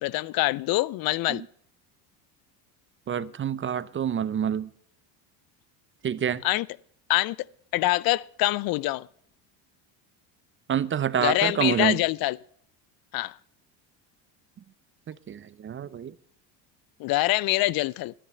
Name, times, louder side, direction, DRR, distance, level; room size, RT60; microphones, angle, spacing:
voice 1, 0.0-1.4 6.4-6.7 7.1-7.4 7.7-9.1 11.2-12.4 13.1-13.4 17.0-18.1, left 18 dB, 55° left, 0.5 m, -25 dB
voice 2, 3.1-4.7 6.0-6.4 10.7-12.0 15.1-16.1, right 8 dB, 30° right, 0.6 m, -27 dB
12.5 x 10.0 x 5.5 m
supercardioid pair, 105°, 44 cm